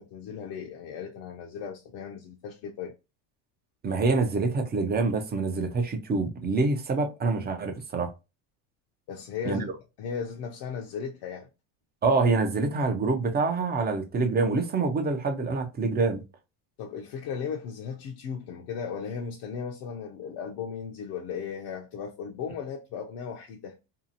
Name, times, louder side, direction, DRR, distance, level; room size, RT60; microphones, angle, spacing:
voice 1, 0.0-2.9 9.1-9.7 10.0-11.5 16.8-23.7, left 6 dB, 55° left, 0.6 m, -36 dB
voice 2, 3.8-8.1 9.4-9.7 12.0-16.2, right 3 dB, 20° right, 0.4 m, -26 dB
2.7 x 2.4 x 2.7 m
supercardioid pair, 115°, 49 cm